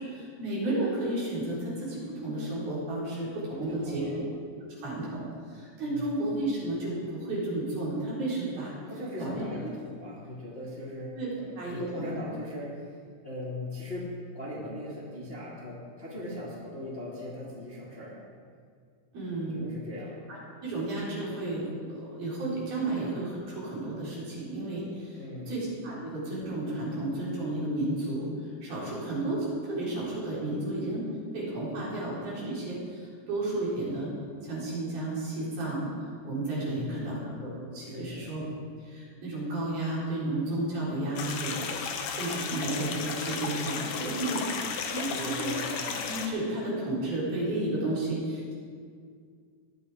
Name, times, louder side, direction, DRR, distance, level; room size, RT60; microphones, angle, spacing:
voice 1, 0.0-4.2 4.8-8.7 9.2-9.4 11.2-12.1 19.1-19.7 20.3-31.1 31.3-34.1 34.4-35.9 36.2-38.4 38.8-41.6 42.1-45.7 46.0-48.5, right 2 dB, 60° right, -7 dB, 5.8 m, -32 dB
voice 2, 3.5-4.2 5.8-6.1 8.9-11.2 11.6-13.0 13.2-14.1 14.3-18.2 19.5-20.2 25.1-25.6 36.6-37.3 37.8-38.3 45.1-45.7, left 1 dB, 15° left, -7 dB, 2.3 m, -39 dB
sound 1, 41.2-46.3, left 6 dB, 90° left, 1.5 m, -34 dB
18.5 x 11.0 x 4.9 m, 2.1 s
omnidirectional pair, 4.8 m